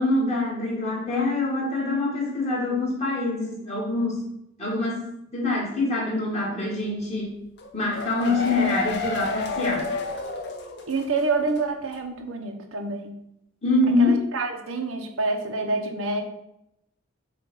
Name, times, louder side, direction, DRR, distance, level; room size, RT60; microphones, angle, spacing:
voice 1, 0.0-4.3 4.6-7.4 7.7-9.9 13.6-14.2, left 2 dB, 30° left, -4 dB, 1.9 m, -25 dB
sound 1, 7.6-11.2 11.5-11.6 11.9-12.0, left 2 dB, 55° left, 0.9 m, -30 dB
voice 2, 10.9-13.1 14.0-16.2, right 3 dB, 80° right, 3 dB, 0.9 m, -27 dB
7.4 x 2.5 x 5.4 m, 0.81 s
head